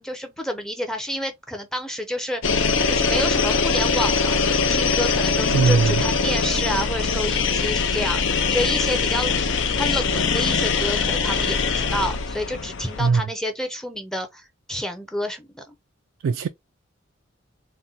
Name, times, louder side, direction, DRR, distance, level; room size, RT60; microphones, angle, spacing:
voice 1, 0.0-15.7, equal, 5° left, 0.5 m, -29 dB
sound 1, 2.4-13.1, left 5 dB, 70° left, 0.6 m, -22 dB
voice 2, 5.5-6.0 13.0-13.2 16.2-16.5, right 5 dB, 90° right, 0.3 m, -19 dB
4.3 x 2.2 x 3.8 m
head